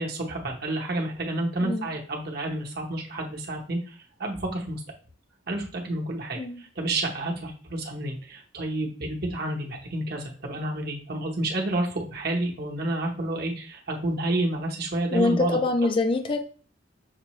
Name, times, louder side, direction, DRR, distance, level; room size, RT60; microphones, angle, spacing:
voice 1, 0.0-3.9 4.2-4.8 5.5-15.6, right 1 dB, 55° right, 0 dB, 1.0 m, -30 dB
voice 2, 15.1-16.4, left 3 dB, 25° left, 7 dB, 0.4 m, -24 dB
6.5 x 2.2 x 3.1 m, 0.40 s
head